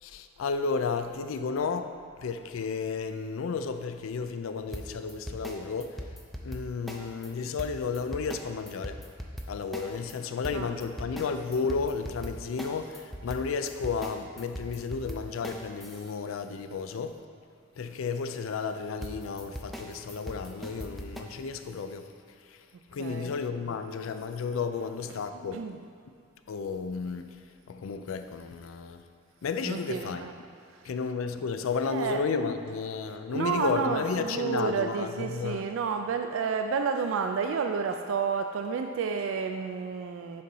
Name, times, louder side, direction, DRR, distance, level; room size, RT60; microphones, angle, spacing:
voice 1, 0.0-5.9 6.4-9.0 9.5-17.2 17.8-22.1 22.9-25.8 26.5-27.3 27.7-29.0 29.4-30.3 30.8-35.6, left 5 dB, 80° left, 9 dB, 0.4 m, -32 dB
sound 1, 4.7-7.3 7.6-10.2 10.4-16.2 19.0-21.2, equal, ahead, 0.4 m, -39 dB
voice 2, 23.0-23.3 24.8-25.2 25.5-25.8 29.6-30.3 30.7-31.0 31.7-32.2 33.3-40.4, right 5 dB, 75° right, 5 dB, 0.3 m, -31 dB
6.6 x 4.1 x 5.4 m, 2.4 s
head